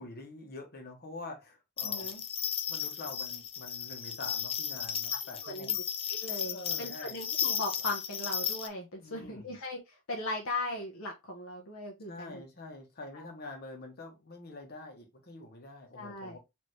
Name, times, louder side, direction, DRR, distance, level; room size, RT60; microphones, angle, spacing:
voice 1, 0.0-2.1 2.7-5.7 6.4-7.2 9.0-9.6 12.1-16.4, left 2 dB, 50° left, 1.2 m, -46 dB
voice 2, 1.8-2.2 5.4-5.8 6.1-12.4 13.1-13.2 15.9-16.4, left 2 dB, 70° left, 0.9 m, -38 dB
sound 1, 1.8-8.7, left 8 dB, 25° left, 0.4 m, -35 dB
4.5 x 2.8 x 3.1 m
head